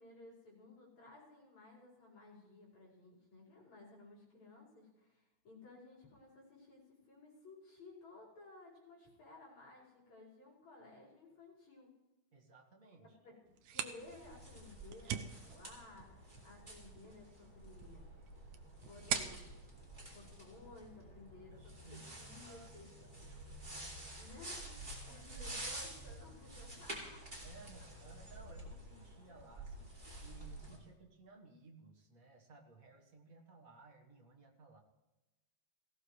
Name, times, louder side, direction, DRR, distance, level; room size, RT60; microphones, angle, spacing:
voice 1, 0.0-11.9 13.0-18.1 18.8-19.7 20.1-23.0 24.1-27.2 29.3-29.4, left 2 dB, 70° left, -5 dB, 6.4 m, -57 dB
voice 2, 12.3-13.2 21.5-22.7 23.0-23.1 25.0-25.5 27.4-29.9 30.2-34.8, right 3 dB, 35° right, 2 dB, 1.6 m, -59 dB
sound 1, 13.5-21.0, right 9 dB, 85° right, 2.1 m, -45 dB
sound 2, 14.0-30.8, right 1 dB, 15° right, 2.9 m, -50 dB
18.0 x 16.5 x 3.2 m, 1.1 s
omnidirectional pair, 3.3 m